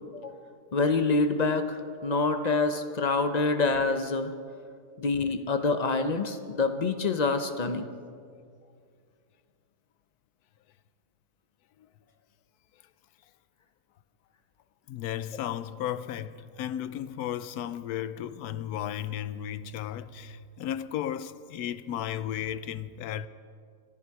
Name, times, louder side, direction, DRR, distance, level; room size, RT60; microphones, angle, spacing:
voice 1, 0.7-4.3 5.0-7.9, left 3 dB, 50° left, 0.5 m, -26 dB
voice 2, 14.9-23.3, left 10 dB, 75° left, 1.1 m, -34 dB
26.5 x 11.0 x 4.7 m
omnidirectional pair, 1.7 m